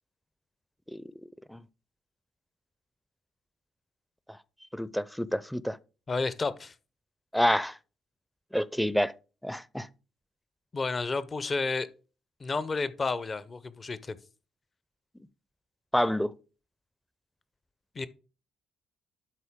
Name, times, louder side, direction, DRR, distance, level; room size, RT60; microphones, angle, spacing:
voice 1, 4.7-5.8 7.3-7.8 8.5-9.1 9.4-9.9 15.9-16.3, equal, 5° left, 0.5 m, -28 dB
voice 2, 6.1-6.7 10.7-11.9 12.4-14.2 17.9-18.1, left 3 dB, 35° left, 0.7 m, -31 dB
12.0 x 4.0 x 3.6 m
hypercardioid pair, 50°, 0 cm